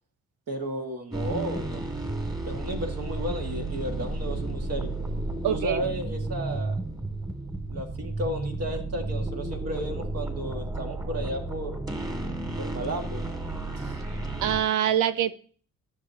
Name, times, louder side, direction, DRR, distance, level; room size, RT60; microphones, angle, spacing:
voice 1, 0.5-1.8 2.5-4.9 5.5-6.8 7.7-11.8 12.6-13.2, right 1 dB, 55° right, 3 dB, 2.0 m, -33 dB
sound 1, 1.1-14.6, right 2 dB, 15° right, 2.3 m, -32 dB
voice 2, 5.4-5.8 14.4-15.3, right 10 dB, 80° right, 14 dB, 0.7 m, -24 dB
14.5 x 6.8 x 2.9 m, 0.43 s
cardioid pair, 90°, 30 cm